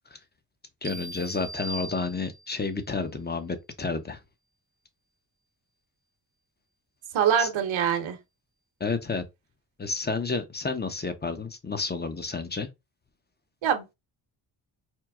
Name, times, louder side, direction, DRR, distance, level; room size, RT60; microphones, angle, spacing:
voice 1, 0.8-4.2 7.4-7.5 8.8-9.2 9.8-12.7, left 4 dB, 20° left, 0.7 m, -30 dB
sound 1, 0.8-2.7, right 2 dB, 25° right, 0.5 m, -40 dB
voice 2, 7.1-8.2 13.6-13.9, right 8 dB, 65° right, 1.0 m, -24 dB
4.5 x 2.0 x 3.5 m
cardioid pair, 75°, 50 cm